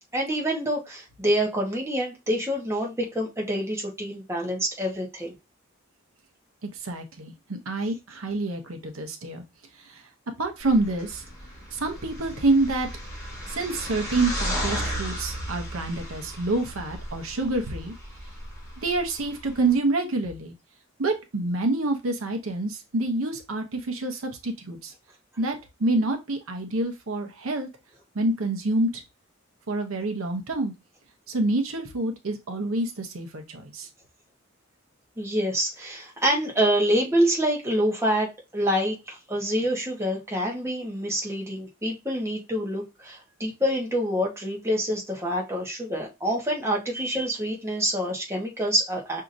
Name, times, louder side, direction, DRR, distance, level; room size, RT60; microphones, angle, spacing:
voice 1, 0.1-5.3 35.2-49.2, equal, 15° right, -2 dB, 1.1 m, -26 dB
voice 2, 6.6-9.4 9.8-10.1 10.4-11.2 11.7-12.9 13.5-17.9 18.8-20.5 21.0-24.9 25.4-27.7 28.1-29.0 29.7-30.7 31.3-33.9, right 2 dB, 85° right, 5 dB, 0.8 m, -27 dB
sound 1, 10.6-19.7, equal, 15° left, 2.5 m, -35 dB
5.9 x 2.8 x 2.6 m, 0.24 s
head